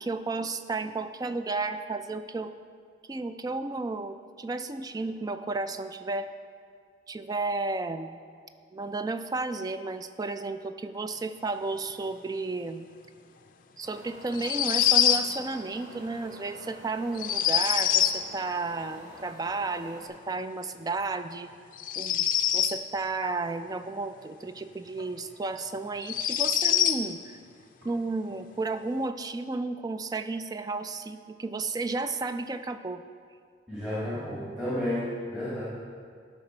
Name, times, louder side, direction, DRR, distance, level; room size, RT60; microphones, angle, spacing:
voice 1, 0.0-2.5 3.1-6.3 7.1-8.2 8.7-12.9 13.8-21.5 22.0-27.4 27.8-33.0, right 3 dB, 20° right, 10 dB, 0.3 m, -33 dB
Wind, 13.8-20.1, equal, 75° right, 2.8 m, -48 dB
sound 1, 14.3-15.3 17.2-18.2 21.8-22.8 25.0-25.1 26.0-27.0, left 10 dB, 45° left, 0.5 m, -24 dB
voice 2, 33.7-35.6, left 1 dB, 5° right, -10 dB, 1.8 m, -32 dB
13.0 x 5.9 x 4.3 m, 2.1 s
head